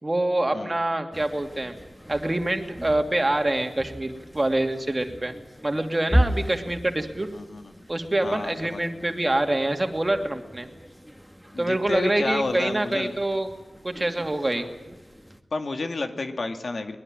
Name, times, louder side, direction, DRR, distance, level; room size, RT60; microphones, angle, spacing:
voice 1, 0.0-1.8 2.1-5.4 5.6-7.3 7.9-10.7 11.6-13.5 13.8-14.7, right 1 dB, 30° right, 5 dB, 2.7 m, -25 dB
sound 1, 1.1-15.4, equal, ahead, 2.0 m, -35 dB
voice 2, 7.3-7.7 8.2-8.9 11.5-13.1 15.5-17.0, left 3 dB, 70° left, 6 dB, 2.2 m, -30 dB
22.5 x 20.5 x 9.1 m, 1.1 s
wide cardioid pair, 65°, 0 cm